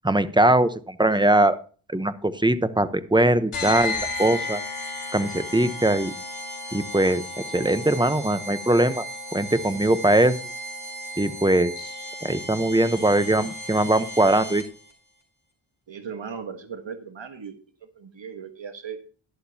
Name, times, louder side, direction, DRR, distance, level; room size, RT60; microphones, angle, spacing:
voice 1, 0.0-1.6 1.9-4.6 5.1-6.1 6.7-7.2 7.5-9.0 9.3-10.4 11.2-11.7 12.2-14.6, right 1 dB, 10° right, 12 dB, 0.9 m, -21 dB
sound 1, 3.5-14.9, left 1 dB, 75° left, 3.8 m, -34 dB
voice 2, 15.9-17.6 18.0-19.0, right 6 dB, 65° right, 7 dB, 1.5 m, -37 dB
11.5 x 11.5 x 2.8 m, 0.38 s
wide cardioid pair, 85°, 49 cm